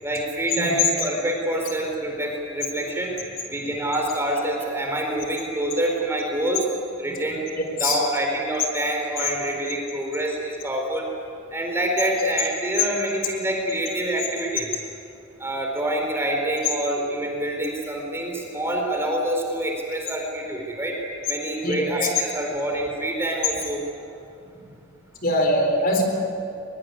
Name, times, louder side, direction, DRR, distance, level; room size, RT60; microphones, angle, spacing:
voice 1, 0.0-3.1 3.5-6.6 7.0-11.1 11.5-14.8 15.4-21.0 21.3-23.8, right 1 dB, 10° right, 1 dB, 4.5 m, -26 dB
voice 2, 25.2-26.0, left 1 dB, 45° left, 3 dB, 4.2 m, -22 dB
23.0 x 22.5 x 9.6 m, 2.5 s
head